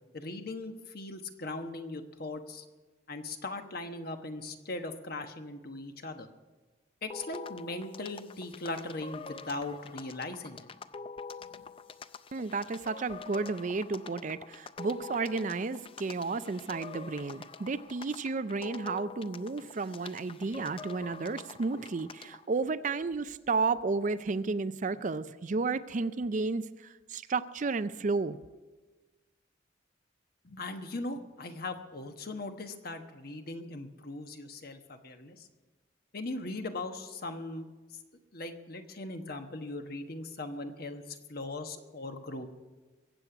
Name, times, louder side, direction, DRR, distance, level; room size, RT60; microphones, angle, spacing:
voice 1, 0.1-2.6 3.1-6.3 7.0-10.7 11.5-11.7 30.4-35.5 36.1-37.6 38.3-42.5, left 2 dB, 50° left, 7 dB, 1.2 m, -39 dB
sound 1, 7.1-22.5, left 4 dB, 30° left, 0.4 m, -46 dB
voice 2, 12.3-28.4, right 4 dB, 40° right, 13 dB, 0.4 m, -32 dB
22.5 x 8.3 x 5.9 m, 1.3 s
head